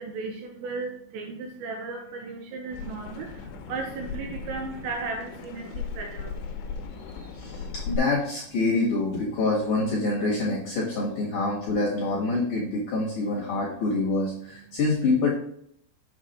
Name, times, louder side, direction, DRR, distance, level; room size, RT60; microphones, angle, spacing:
voice 1, 0.0-7.7 14.7-14.8, right 4 dB, 85° right, 2 dB, 2.6 m, -36 dB
sound 1, 2.7-8.0, left 5 dB, 85° left, 3.2 m, -37 dB
voice 2, 7.4-15.3, left 3 dB, 60° left, -5 dB, 2.3 m, -26 dB
7.6 x 6.0 x 3.0 m, 0.69 s
omnidirectional pair, 5.7 m